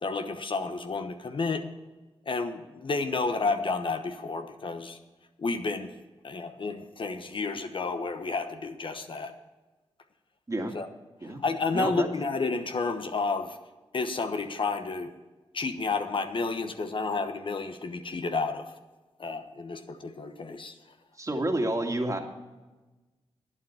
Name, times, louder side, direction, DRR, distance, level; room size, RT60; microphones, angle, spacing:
voice 1, 0.0-1.6 2.3-5.0 5.4-5.9 6.2-9.3 10.7-10.9 11.2-13.6 13.9-15.1 15.5-18.7 19.2-20.7, left 4 dB, 55° left, 8 dB, 1.0 m, -31 dB
voice 2, 11.7-12.1 21.2-22.2, right 1 dB, 30° right, 3 dB, 2.0 m, -29 dB
11.0 x 9.3 x 5.6 m, 1.2 s
cardioid pair, 45°, 11 cm